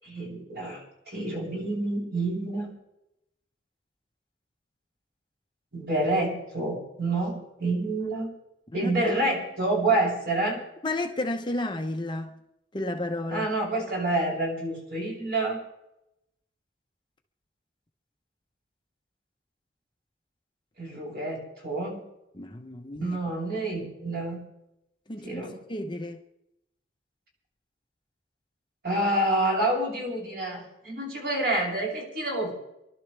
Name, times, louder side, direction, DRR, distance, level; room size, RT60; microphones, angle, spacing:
voice 1, 0.0-2.7 5.7-8.3 8.7-10.6 13.3-15.6 20.8-22.0 23.0-24.4 25.2-25.6 28.8-32.5, right 2 dB, 60° right, 7.8 m, -28 dB
voice 2, 10.8-12.3 12.7-13.5 22.3-23.2 25.1-25.4 25.7-26.2, left 2 dB, 25° left, 0.9 m, -32 dB
28.5 x 12.0 x 3.4 m
head